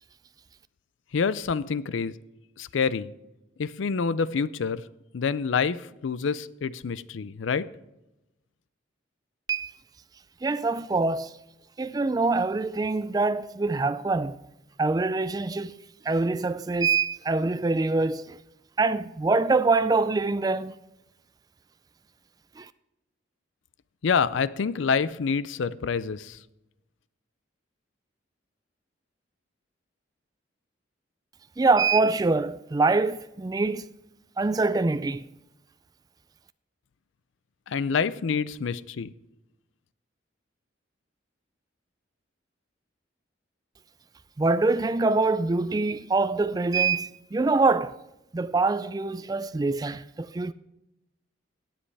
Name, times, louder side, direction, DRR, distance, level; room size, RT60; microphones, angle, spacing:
voice 1, 1.1-2.1 2.6-3.1 3.6-4.8 5.1-7.7 24.0-26.4 37.7-39.1, left 5 dB, 75° left, 0.5 m, -27 dB
voice 2, 10.4-11.4 11.8-14.4 14.8-15.7 16.0-18.4 18.8-20.7 22.6-22.7 31.6-33.9 34.4-35.2 44.4-48.0 48.3-50.5, right 3 dB, 20° right, 0.3 m, -24 dB
18.0 x 7.6 x 3.4 m
head